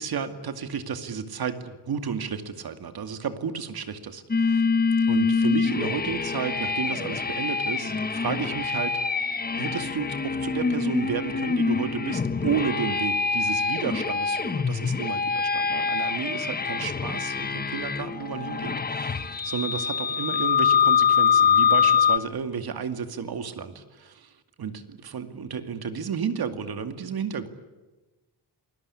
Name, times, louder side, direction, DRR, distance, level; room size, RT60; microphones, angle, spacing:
voice 1, 0.0-4.7 5.1-9.0 9.6-27.5, right 6 dB, 65° right, 8 dB, 2.4 m, -32 dB
sound 1, 4.3-22.2, left 6 dB, 25° left, 1.0 m, -25 dB
28.5 x 21.0 x 9.8 m, 1.2 s
wide cardioid pair, 155°, 40 cm